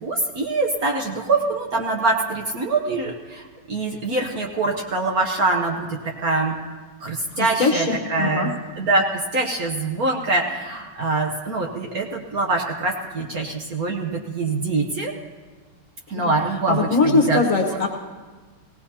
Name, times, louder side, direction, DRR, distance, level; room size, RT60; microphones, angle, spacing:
voice 1, 0.0-6.5 7.0-15.1 16.1-17.8, right 3 dB, 55° right, 1 dB, 1.2 m, -24 dB
voice 2, 7.3-8.5 16.1-16.3 16.7-17.9, left 3 dB, 45° left, 2 dB, 1.2 m, -21 dB
18.5 x 17.5 x 2.9 m, 1.4 s
omnidirectional pair, 2.3 m